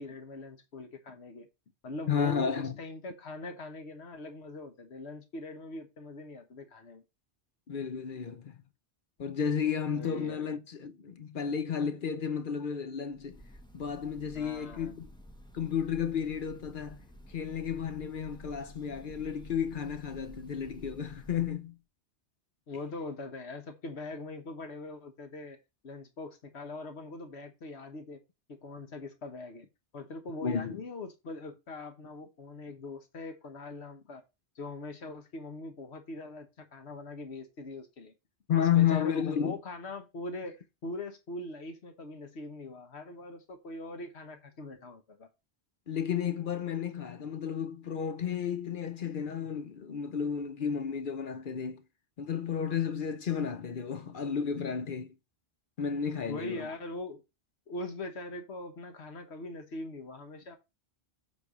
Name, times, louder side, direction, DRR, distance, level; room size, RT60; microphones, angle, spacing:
voice 1, 0.0-1.5 1.8-7.0 9.9-10.5 14.3-15.0 22.7-25.6 25.8-28.2 28.5-29.7 29.9-34.2 34.5-38.1 38.5-45.3 56.3-57.2 57.7-60.6, left 2 dB, 75° left, 1.4 m, -42 dB
voice 2, 2.1-2.7 7.7-8.6 9.2-13.4 13.7-15.1 15.5-17.0 17.3-21.8 30.4-30.8 38.5-39.6 45.9-51.8 52.2-55.1 55.8-56.7, left 8 dB, 55° left, 0.8 m, -32 dB
Breathing / Bird, 13.1-21.6, equal, 5° left, 0.9 m, -52 dB
7.5 x 3.4 x 6.0 m
omnidirectional pair, 1.1 m